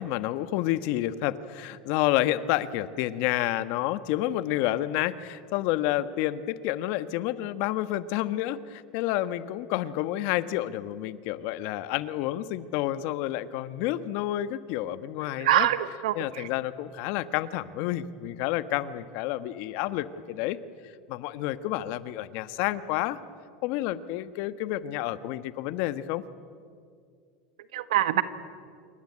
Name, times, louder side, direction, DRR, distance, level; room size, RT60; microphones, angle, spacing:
voice 1, 0.0-15.7 16.1-20.6 20.8-23.2 23.6-26.2, left 14 dB, 60° left, 13 dB, 1.3 m, -29 dB
voice 2, 15.4-16.5 27.7-28.2, right 13 dB, 80° right, 13 dB, 1.5 m, -24 dB
27.5 x 24.0 x 8.7 m, 2.2 s
hypercardioid pair, 100°, 4 cm